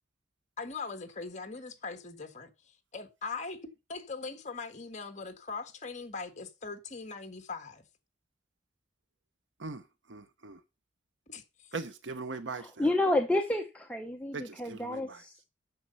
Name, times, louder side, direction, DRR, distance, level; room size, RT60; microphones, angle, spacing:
voice 1, 0.6-2.5 2.9-3.6 3.9-7.8 11.3-11.4, left 4 dB, 40° left, 1.6 m, -40 dB
voice 2, 10.1-10.6 11.7-12.7 14.3-15.0, right 4 dB, 70° right, 0.9 m, -39 dB
voice 3, 12.5-15.5, left 1 dB, 5° left, 0.8 m, -30 dB
9.3 x 6.6 x 5.7 m
head